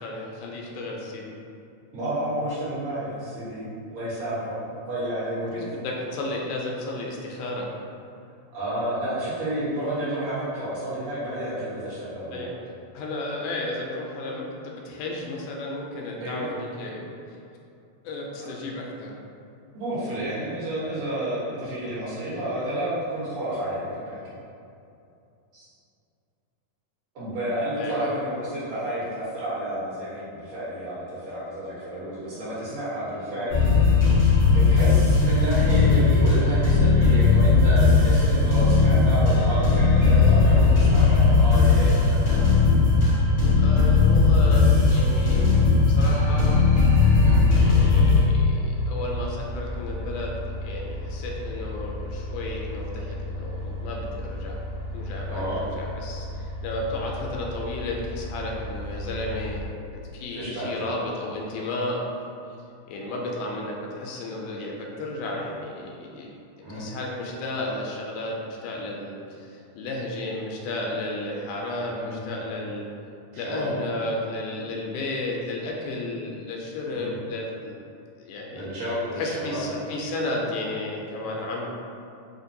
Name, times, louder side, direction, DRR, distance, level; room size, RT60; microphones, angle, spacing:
voice 1, 0.0-1.4 5.5-7.7 12.3-12.5 12.9-17.4 18.0-19.1 27.8-28.1 36.2-36.3 40.0-40.4 43.6-45.6 45.9-46.6 47.6-50.4 50.6-54.6 54.9-59.6 59.9-62.0 62.9-66.4 66.7-72.9 73.4-77.7 78.2-78.7 79.2-81.7, left 2 dB, 85° left, -2 dB, 2.0 m, -33 dB
voice 2, 1.9-4.6 4.9-5.6 8.5-12.5 16.2-16.5 18.4-18.5 19.7-24.2 25.5-25.7 27.2-33.6 34.5-42.4 47.2-47.4 55.3-55.7 60.4-60.9 66.6-66.9 71.9-72.2 73.3-73.8 76.9-77.1 78.5-79.8, right 1 dB, 55° right, -11 dB, 1.7 m, -30 dB
sound 1, 33.5-48.2, left 4 dB, 60° left, 0.7 m, -18 dB
sound 2, 46.6-59.7, left 1 dB, 85° right, 0.9 m, -35 dB
5.1 x 2.2 x 2.6 m, 2.6 s
omnidirectional pair, 3.6 m